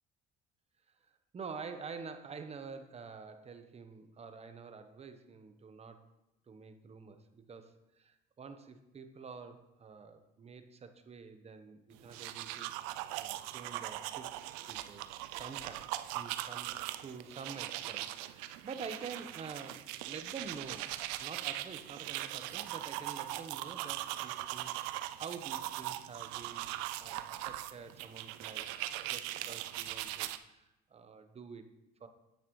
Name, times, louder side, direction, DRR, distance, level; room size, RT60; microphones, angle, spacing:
voice 1, 1.3-6.0 6.5-12.7 13.2-16.8 17.0-20.9 21.2-26.7 27.0-28.7 29.1-31.6 32.0-32.1, right 5 dB, 35° right, 8 dB, 1.0 m, -48 dB
sound 1, 12.0-30.4, right 15 dB, 90° right, 0.5 m, -40 dB
10.0 x 8.8 x 3.2 m, 0.95 s
supercardioid pair, 90°, 19 cm